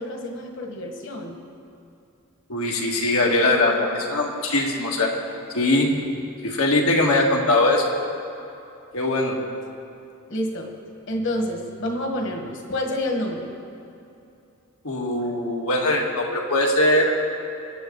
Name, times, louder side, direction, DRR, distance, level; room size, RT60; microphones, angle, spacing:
voice 1, 0.0-1.4 10.3-10.7 11.1-13.5, left 1 dB, 55° left, 2 dB, 1.6 m, -28 dB
voice 2, 2.5-5.1 5.5-6.0 6.4-7.9 8.9-9.4 14.8-17.2, left 2 dB, 85° left, 0 dB, 1.7 m, -21 dB
23.5 x 8.5 x 3.9 m, 2.7 s
head